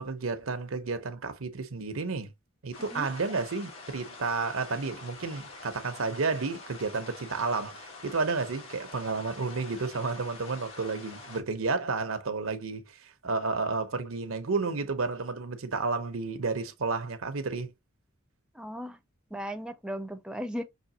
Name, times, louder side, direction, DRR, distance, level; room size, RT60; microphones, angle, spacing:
voice 1, 0.0-2.3 2.6-17.7, right 4 dB, 90° right, 0.9 m, -31 dB
sound 1, 2.7-11.4, left 3 dB, 85° left, 1.5 m, -46 dB
voice 2, 18.5-19.0 19.3-20.6, equal, 5° right, 0.5 m, -36 dB
5.9 x 2.9 x 2.8 m
head